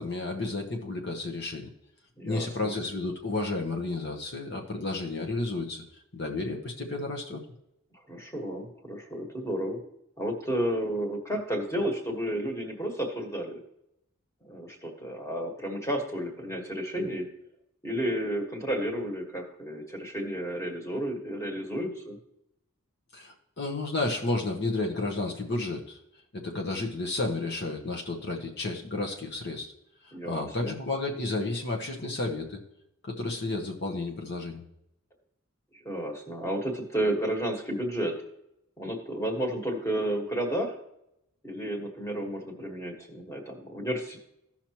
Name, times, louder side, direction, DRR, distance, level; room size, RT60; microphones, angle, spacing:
voice 1, 0.0-1.7 2.2-5.8 6.1-7.4 23.1-26.0 26.3-29.7 30.0-32.6 33.0-34.6, left 2 dB, 50° left, 1 dB, 1.0 m, -32 dB
voice 2, 2.2-2.7 8.1-9.8 10.2-13.6 14.4-17.3 17.8-22.2 30.1-30.7 35.7-38.1 38.8-40.7 41.4-44.2, right 1 dB, 15° left, 2 dB, 1.5 m, -32 dB
15.5 x 5.8 x 3.0 m, 0.82 s
head